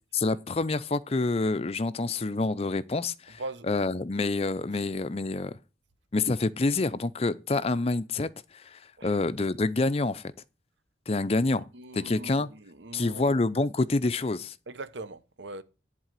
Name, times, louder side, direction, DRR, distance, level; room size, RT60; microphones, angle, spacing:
voice 1, 0.1-3.4 3.7-5.6 6.1-10.3 11.1-11.6 11.9-12.5 12.9-14.5, left 3 dB, 35° left, 0.5 m, -27 dB
voice 2, 11.7-13.4 14.7-15.6, right 2 dB, 85° right, 0.8 m, -41 dB
11.0 x 4.0 x 7.5 m
head